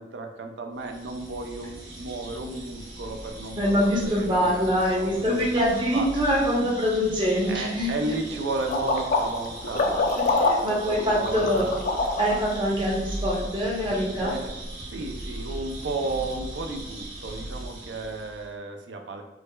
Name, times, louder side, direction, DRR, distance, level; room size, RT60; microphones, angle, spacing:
voice 1, 0.0-5.6 5.9-6.1 7.5-10.2 10.7-11.7 14.2-14.6 14.9-19.2, right 3 dB, 90° right, 4 dB, 0.4 m, -33 dB
sound 1, 0.8-18.5, right 1 dB, 65° right, 1.3 m, -39 dB
voice 2, 3.6-7.9 10.4-11.7 12.2-14.3, equal, 25° right, -4 dB, 0.7 m, -24 dB
sound 2, 8.7-12.5, left 3 dB, 45° left, 0.3 m, -25 dB
4.6 x 2.1 x 2.2 m, 0.98 s
head